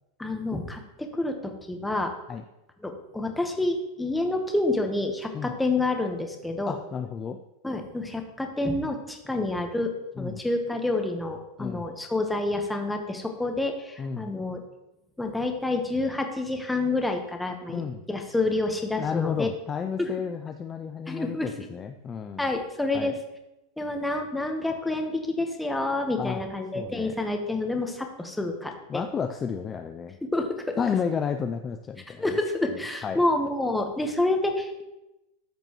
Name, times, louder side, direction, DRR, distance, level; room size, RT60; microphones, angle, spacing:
voice 1, 0.2-2.1 2.8-6.8 7.6-14.6 15.2-17.8 18.1-19.5 20.0-20.1 21.1-21.5 22.4-23.2 23.8-29.0 30.2-30.8 32.1-34.8, left 2 dB, 5° left, 4 dB, 1.2 m, -28 dB
voice 2, 6.7-7.4 10.2-10.4 11.6-11.9 14.0-14.3 17.7-18.0 19.0-22.4 22.9-23.1 26.2-26.4 26.7-27.1 28.9-30.2 30.8-32.2 33.0-33.2, left 6 dB, 25° left, 6 dB, 0.4 m, -31 dB
13.5 x 5.2 x 3.1 m, 0.94 s
supercardioid pair, 125°, 0 cm